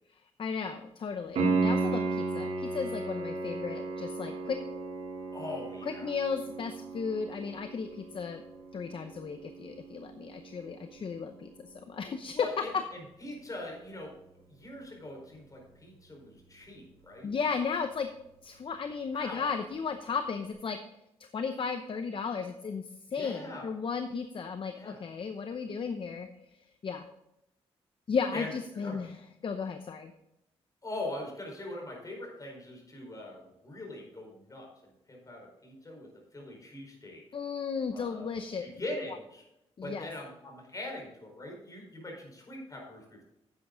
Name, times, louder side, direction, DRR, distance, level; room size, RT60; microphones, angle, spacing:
voice 1, 0.4-4.6 5.9-8.4 8.7-12.8 17.2-18.1 18.4-20.8 21.2-26.3 26.8-27.1 28.1-29.1 29.4-30.1 37.3-38.6 39.8-40.1, left 5 dB, 50° left, 8 dB, 0.7 m, -34 dB
Piano, 1.3-12.0 15.3-15.4, right 3 dB, 85° right, 3.6 m, -35 dB
voice 2, 5.3-6.1 12.3-14.2 14.5-17.3 19.1-19.6 23.1-23.7 24.8-25.0 28.3-28.5 28.8-29.0 30.8-34.7 35.1-37.2 37.9-38.3 38.6-39.4 39.8-43.2, left 2 dB, 30° left, 0 dB, 4.5 m, -42 dB
10.5 x 8.5 x 3.9 m, 0.85 s
cardioid pair, 85°, 11 cm